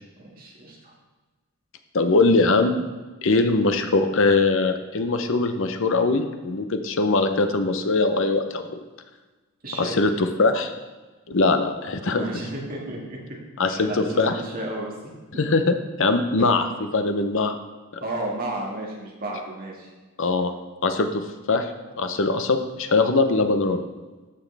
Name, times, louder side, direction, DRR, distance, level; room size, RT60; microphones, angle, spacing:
voice 1, 0.2-0.9 9.6-10.0 12.0-13.4 13.7-14.9 16.4-16.5 18.0-19.9, right 1 dB, 40° right, -2 dB, 2.0 m, -33 dB
voice 2, 1.9-2.8 3.2-8.8 9.8-10.7 11.3-12.2 13.6-14.3 15.4-16.7 16.9-17.6 20.2-20.5 20.8-21.7 22.0-23.8, left 3 dB, 60° left, 8 dB, 0.7 m, -21 dB
13.0 x 6.2 x 3.4 m, 1.3 s
head